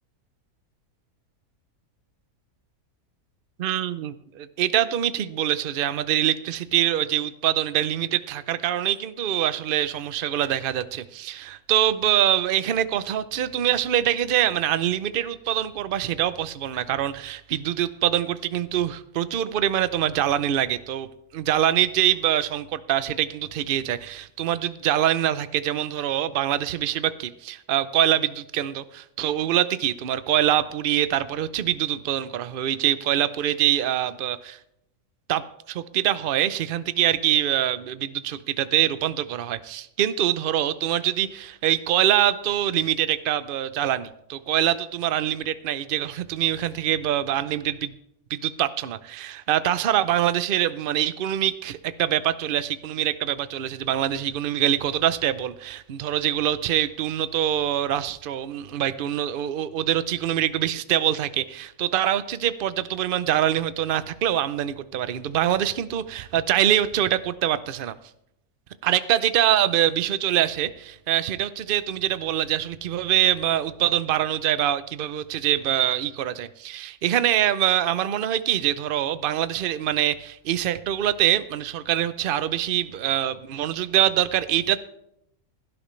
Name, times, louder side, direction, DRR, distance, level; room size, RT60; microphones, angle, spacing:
voice 1, 3.6-21.1 21.3-34.6 35.3-35.4 35.7-47.9 48.3-67.9 68.8-84.8, right 11 dB, 55° right, 14 dB, 0.6 m, -24 dB
16.5 x 12.0 x 3.2 m, 0.79 s
omnidirectional pair, 1.6 m